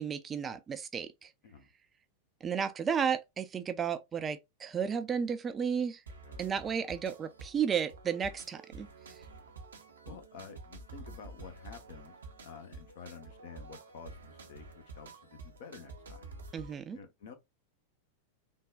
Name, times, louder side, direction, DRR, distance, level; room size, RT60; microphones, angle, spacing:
voice 1, 0.0-1.3 2.4-6.0 6.4-9.2 16.5-17.0, right 7 dB, 20° right, 0.4 m, -33 dB
sound 1, 6.1-16.7, right 3 dB, 70° right, 0.6 m, -49 dB
voice 2, 10.1-16.3 16.9-17.3, left 6 dB, 55° left, 0.7 m, -50 dB
3.5 x 2.3 x 2.2 m
figure-of-eight pair, 90°, 0 cm